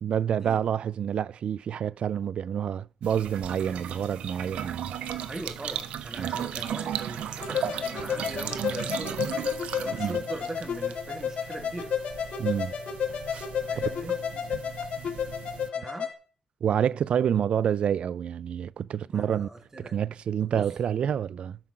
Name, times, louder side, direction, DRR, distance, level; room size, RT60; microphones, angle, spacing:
voice 1, 0.0-4.9 6.2-6.3 10.0-10.2 12.4-12.7 13.8-13.9 16.6-19.5 19.8-21.6, right 9 dB, 65° right, 0.4 m, -28 dB
sound 1, 3.0-15.7, right 10 dB, 85° right, 0.8 m, -36 dB
voice 2, 5.3-9.3 9.8-11.9 13.7-14.1 15.7-16.1 19.1-19.9 20.4-20.6, right 2 dB, 25° right, 3.3 m, -40 dB
sound 2, 7.4-16.1, left 7 dB, 65° left, 2.2 m, -32 dB
11.5 x 5.8 x 7.5 m
cardioid pair, 100°, 2 cm